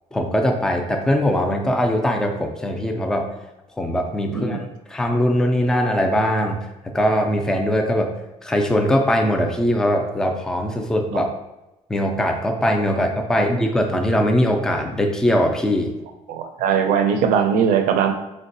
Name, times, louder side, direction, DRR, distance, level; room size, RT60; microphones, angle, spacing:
voice 1, 0.1-3.3 3.8-8.1 8.4-11.3 11.9-15.9, equal, 5° left, 3 dB, 0.3 m, -21 dB
voice 2, 16.3-18.1, right 7 dB, 85° right, 6 dB, 0.4 m, -20 dB
3.8 x 2.1 x 2.6 m, 0.98 s
cardioid pair, 135°, 13 cm